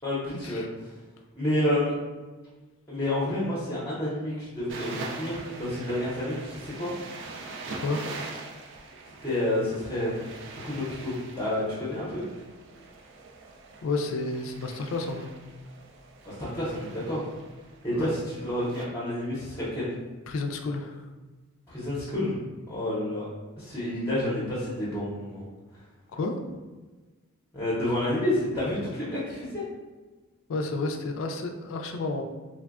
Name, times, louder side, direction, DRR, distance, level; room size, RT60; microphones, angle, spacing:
voice 1, 0.0-0.6 1.3-1.9 2.9-6.9 9.2-10.2 10.6-12.2 16.3-17.3 17.8-20.0 21.7-22.4 22.7-23.2 23.6-25.4 27.5-29.6, left 1 dB, 15° left, -9 dB, 0.6 m, -29 dB
sound 1, 4.7-18.9, right 3 dB, 55° right, 0.3 m, -43 dB
voice 2, 7.8-8.1 13.8-15.3 17.9-18.1 20.3-21.0 26.1-26.4 30.5-32.2, left 3 dB, 65° left, 4 dB, 0.3 m, -31 dB
3.2 x 2.1 x 2.3 m, 1.3 s
head